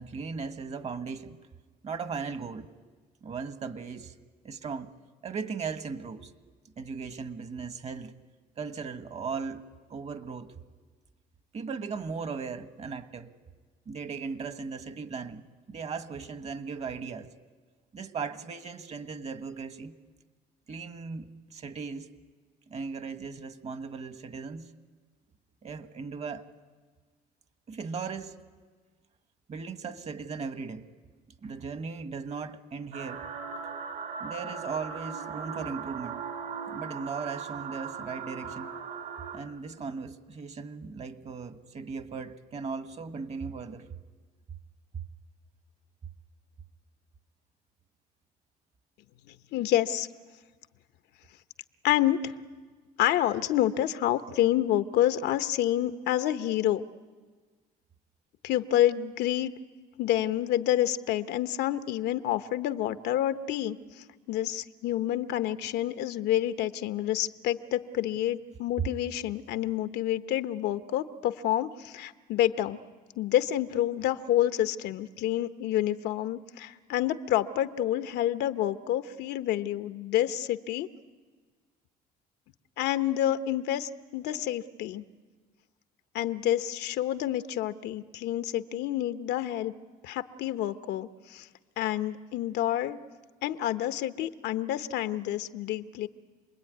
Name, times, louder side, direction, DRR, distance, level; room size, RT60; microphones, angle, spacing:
voice 1, 0.0-1.4 1.8-2.7 3.2-4.1 4.4-4.9 5.2-6.3 6.8-8.1 8.6-9.6 9.9-10.5 11.5-13.3 13.8-17.3 17.9-20.0 20.7-22.1 22.7-24.7 25.6-26.4 27.7-28.3 29.5-30.8 31.4-33.3 34.2-36.2 36.7-38.8 39.3-43.9 68.8-68.9, right 5 dB, 40° right, 1.5 m, -37 dB
sound 1, 32.9-39.4, right 6 dB, 55° right, 2.6 m, -38 dB
voice 2, 49.5-50.1 51.8-52.3 53.0-56.8 58.4-59.5 60.0-72.8 73.2-80.9 82.8-85.0 86.1-89.7 90.0-91.5 91.8-93.0 93.4-96.1, left 12 dB, 80° left, 1.0 m, -28 dB
27.5 x 21.0 x 9.4 m
cardioid pair, 110°, 17 cm